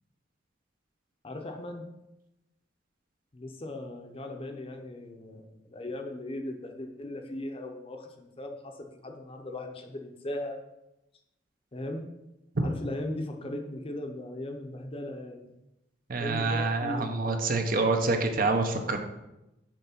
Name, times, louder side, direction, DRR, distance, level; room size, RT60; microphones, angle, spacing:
voice 1, 1.2-1.9 3.3-10.6 11.7-12.1 12.6-15.6 16.2-17.9, left 1 dB, 30° left, 4 dB, 0.7 m, -38 dB
voice 2, 16.1-19.0, right 3 dB, 50° right, 5 dB, 0.8 m, -27 dB
7.3 x 3.3 x 5.8 m, 0.92 s
head